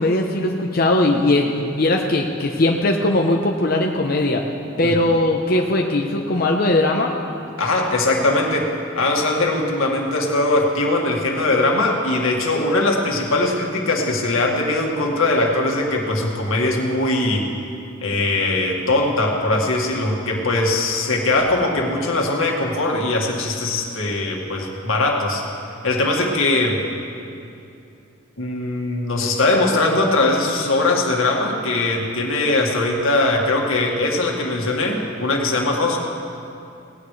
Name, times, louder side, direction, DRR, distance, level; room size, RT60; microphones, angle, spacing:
voice 1, 0.0-4.4 4.8-7.1, left 2 dB, 45° left, 0 dB, 0.8 m, -19 dB
voice 2, 7.6-8.7 9.0-17.5 18.0-25.4 25.8-26.8 28.4-36.0, left 2 dB, 85° left, -1 dB, 2.0 m, -20 dB
18.5 x 16.5 x 3.3 m, 2.6 s
head